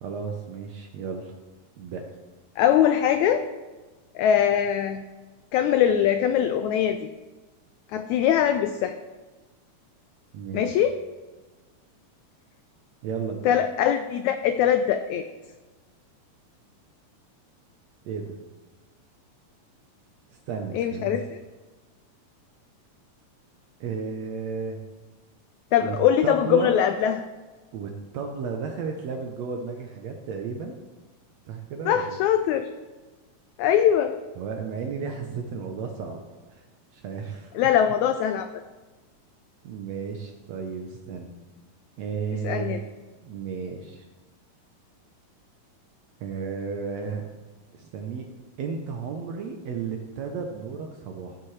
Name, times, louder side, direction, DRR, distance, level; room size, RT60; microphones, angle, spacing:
voice 1, 0.0-1.3 1.8-2.0 10.3-10.9 13.0-13.6 18.0-18.4 20.5-21.2 23.8-24.8 25.8-26.0 26.2-26.7 27.7-30.7 31.5-32.2 34.4-36.2 36.5-36.7 36.9-37.5 39.6-41.3 42.0-42.8 43.2-44.0 46.2-47.2 47.7-48.3 48.6-51.4, right 5 dB, 70° right, 3 dB, 1.7 m, -33 dB
voice 2, 2.6-3.4 4.1-5.0 5.5-7.1 7.9-8.9 10.5-11.0 13.4-15.2 20.7-21.4 25.7-27.2 31.9-32.7 33.6-34.1 37.5-38.5 42.3-42.8, left 9 dB, 85° left, 9 dB, 1.6 m, -22 dB
14.5 x 7.3 x 3.2 m, 1.3 s
omnidirectional pair, 3.8 m